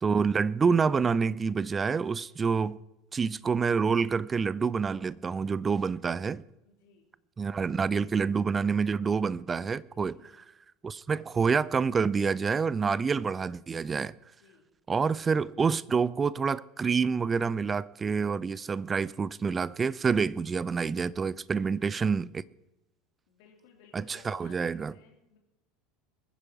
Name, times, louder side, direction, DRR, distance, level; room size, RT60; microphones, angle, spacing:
voice 1, 0.0-2.8 3.1-6.4 7.4-10.2 10.8-14.1 14.9-22.4 23.9-24.9, right 5 dB, 25° right, 0.5 m, -27 dB
voice 2, 6.6-7.1 9.9-10.4 14.4-14.7 21.5-22.1 23.3-25.4, left 6 dB, 60° left, 3.3 m, -59 dB
21.5 x 9.8 x 4.7 m
figure-of-eight pair, 75°, 0 cm